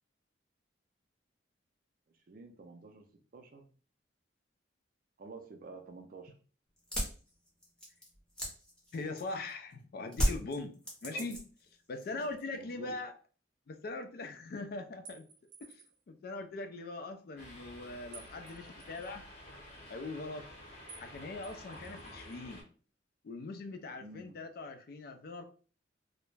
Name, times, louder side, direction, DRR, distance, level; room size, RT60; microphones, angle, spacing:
voice 1, 2.3-3.0 3.3-3.7 5.2-6.4 11.1-11.3 12.2-12.3 12.5-12.9 17.4-17.5 24.0-24.4, right 3 dB, 50° right, 5 dB, 0.4 m, -49 dB
sound 1, 6.8-9.5 10.1-11.7 12.0-12.5, equal, 5° left, 0.6 m, -34 dB
voice 2, 8.9-10.7 11.0-11.4 11.9-13.1 13.7-15.3 15.6-15.8 16.1-19.3 19.9-20.5 21.0-22.6 23.2-25.4, left 3 dB, 55° left, 7 dB, 0.3 m, -41 dB
sound 2, 15.1-16.0 18.1-19.1 20.9-21.1 21.4-22.4, right 4 dB, 70° right, 0.8 m, -54 dB
sound 3, 17.4-22.6, left 1 dB, 35° left, 0.9 m, -51 dB
2.3 x 2.0 x 3.1 m, 0.39 s
head